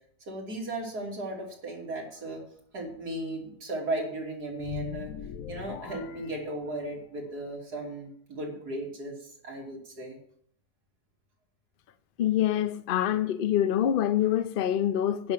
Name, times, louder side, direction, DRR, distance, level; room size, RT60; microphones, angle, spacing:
voice 1, 0.2-2.4 2.7-5.1 5.5-10.2, right 2 dB, 75° right, 3.6 m, -36 dB
sound 1, 4.6-7.2, left 9 dB, 65° left, 1.0 m, -41 dB
voice 2, 12.2-15.3, left 11 dB, 80° left, 0.4 m, -25 dB
10.5 x 6.0 x 8.8 m
omnidirectional pair, 1.7 m